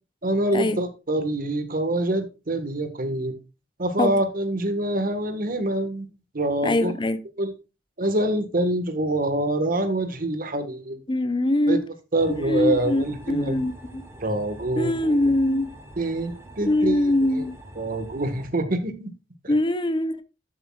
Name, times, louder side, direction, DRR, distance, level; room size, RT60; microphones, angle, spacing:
voice 1, 0.2-3.4 3.8-6.1 6.3-6.9 7.4-7.5 8.0-11.0 11.7-11.8 12.1-13.7 14.2-15.2 16.0-17.4 17.8-19.1 19.4-19.5, right 1 dB, 50° right, 1.5 m, -25 dB
voice 2, 6.6-7.2 11.1-11.8 12.3-14.0 14.8-15.7 16.6-17.5 19.5-20.2, left 1 dB, 25° left, 0.6 m, -23 dB
sound 1, 12.2-18.5, right 1 dB, 15° right, 1.8 m, -45 dB
12.0 x 7.3 x 2.3 m
head